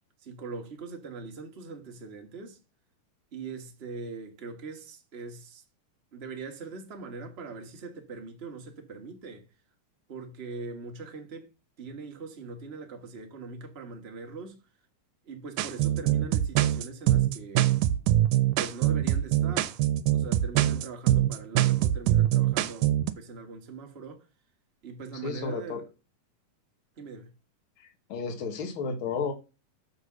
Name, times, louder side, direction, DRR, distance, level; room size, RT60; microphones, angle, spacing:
voice 1, 0.2-2.6 3.3-5.6 6.1-9.4 10.1-11.5 11.8-14.6 15.2-17.8 18.6-19.8 20.1-24.3 24.8-25.9 27.0-27.3, right 4 dB, 40° right, 0.9 m, -41 dB
sound 1, 15.6-23.1, right 13 dB, 80° right, 2.1 m, -23 dB
voice 2, 25.2-25.8 27.8-29.3, left 4 dB, 45° left, 2.0 m, -32 dB
7.1 x 4.2 x 6.2 m
omnidirectional pair, 3.7 m